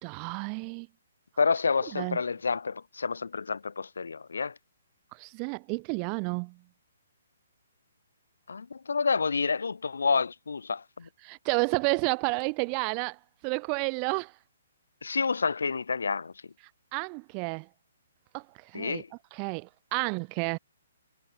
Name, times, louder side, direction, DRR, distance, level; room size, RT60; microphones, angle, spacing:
voice 1, 0.0-0.9 1.9-2.2 5.1-6.6 11.2-14.3 16.9-17.7 18.3-19.0 19.3-20.6, right 40 dB or more, 30° right, 1.0 m, -31 dB
voice 2, 1.4-4.6 8.5-11.1 15.0-16.3 18.7-19.1, left 5 dB, 70° left, 3.5 m, -29 dB
figure-of-eight pair, 130°, 0 cm